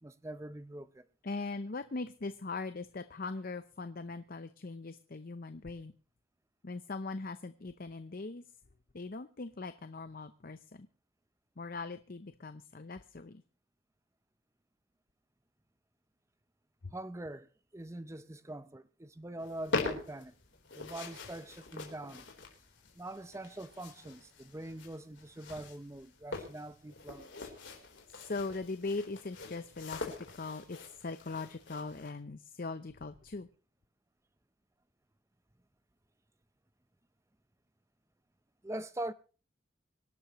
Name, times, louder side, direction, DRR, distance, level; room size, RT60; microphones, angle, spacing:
voice 1, 0.0-1.1 16.9-20.3 20.7-22.3 23.0-27.5 38.6-39.1, right 1 dB, 15° right, 0.6 m, -43 dB
voice 2, 1.2-5.9 6.6-8.4 8.9-10.9 11.6-13.4 16.8-16.9 28.2-33.5, left 3 dB, 45° left, 0.7 m, -40 dB
sound 1, 19.4-32.1, left 3 dB, 60° left, 3.9 m, -43 dB
25.0 x 11.5 x 3.1 m
head